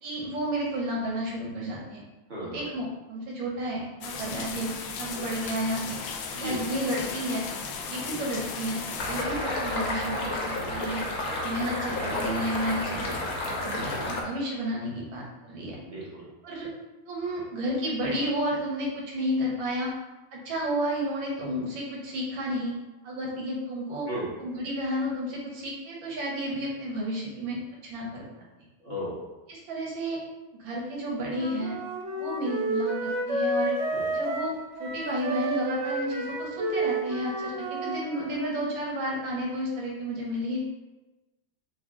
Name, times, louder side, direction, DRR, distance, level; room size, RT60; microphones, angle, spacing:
voice 1, 0.0-2.0 2.4-6.0 6.3-7.4 7.9-11.0 11.4-13.1 13.5-15.8 16.4-16.7 17.1-19.9 20.3-22.7 23.0-24.1 24.4-28.2 29.5-30.2 30.6-31.8 32.1-33.7 34.1-40.6, equal, 85° right, -3 dB, 1.6 m, -32 dB
voice 2, 2.3-2.7 5.1-5.3 6.4-6.6 8.1-8.2 9.2-9.4 10.6-10.9 13.7-14.1 15.8-16.3 24.1-24.3 28.8-29.2 33.9-34.1, right 1 dB, 30° right, -8 dB, 1.1 m, -36 dB
sound 1, 4.0-9.2, left 5 dB, 80° left, 1.3 m, -36 dB
sound 2, 9.0-14.2, left 2 dB, 60° left, 1.1 m, -31 dB
Wind instrument woodwind instrument, 31.2-38.5, right 2 dB, 65° right, 0.7 m, -30 dB
5.9 x 2.1 x 3.6 m, 1.1 s
omnidirectional pair, 2.1 m